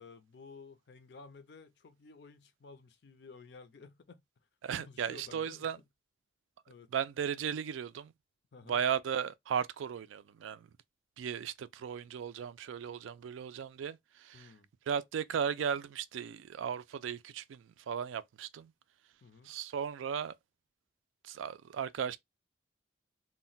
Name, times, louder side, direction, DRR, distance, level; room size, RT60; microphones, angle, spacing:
voice 1, 0.0-4.2 4.8-5.7 6.7-6.9 8.5-8.8 14.3-14.7 19.2-19.5, left 4 dB, 60° left, 0.4 m, -53 dB
voice 2, 4.6-5.8 6.9-8.1 8.7-10.7 11.2-14.5 14.9-18.7 19.4-20.3 21.2-22.2, right 8 dB, 85° right, 0.3 m, -36 dB
2.1 x 2.1 x 3.8 m
head